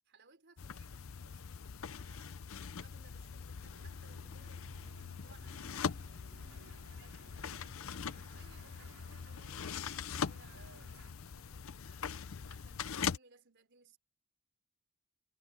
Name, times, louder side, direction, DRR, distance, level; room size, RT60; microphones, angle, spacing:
voice 1, 0.0-1.6 2.0-12.2 12.5-14.0, right 4 dB, 55° right, 4.4 m, -65 dB
sound 1, 0.6-13.2, left 6 dB, 70° left, 0.6 m, -42 dB
sound 2, 3.6-11.1, right 2 dB, 90° right, 4.8 m, -60 dB
head